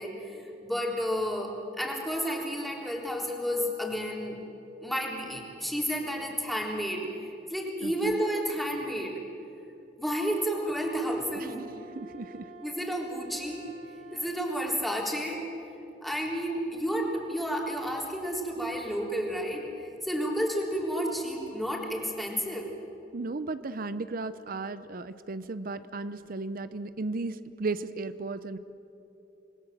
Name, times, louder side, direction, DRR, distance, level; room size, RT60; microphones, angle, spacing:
voice 1, 0.0-4.4 4.8-7.1 7.5-9.2 10.0-11.7 12.0-12.1 12.6-13.6 14.1-15.4 16.0-19.7 20.0-22.7, equal, ahead, -2 dB, 3.5 m, -31 dB
voice 2, 7.8-8.1 11.4-11.5 12.0-12.5 23.1-28.6, right 3 dB, 50° right, 13 dB, 0.7 m, -35 dB
Wind instrument woodwind instrument, 10.2-14.8, right 2 dB, 70° right, 6.3 m, -50 dB
27.5 x 20.5 x 7.5 m, 2.9 s
head